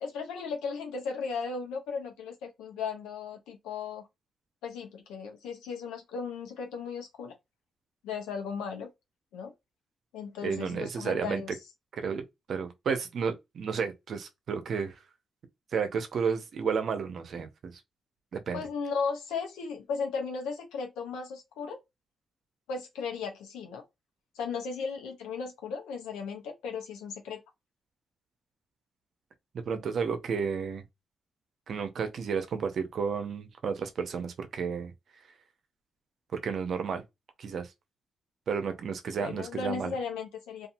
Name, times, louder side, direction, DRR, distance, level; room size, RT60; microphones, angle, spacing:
voice 1, 0.0-4.1 4.6-7.3 8.0-8.9 9.3-9.5 10.1-11.6 18.5-21.8 22.7-23.8 24.3-27.4 39.2-40.7, left 5 dB, 85° left, 0.7 m, -36 dB
voice 2, 10.4-11.4 12.0-12.2 12.5-14.9 15.7-17.7 18.3-18.6 29.5-30.8 31.7-34.9 36.4-37.0 37.4-37.7 38.5-39.9, right 6 dB, 65° right, 0.6 m, -32 dB
2.7 x 2.4 x 2.6 m
supercardioid pair, 50°, 0 cm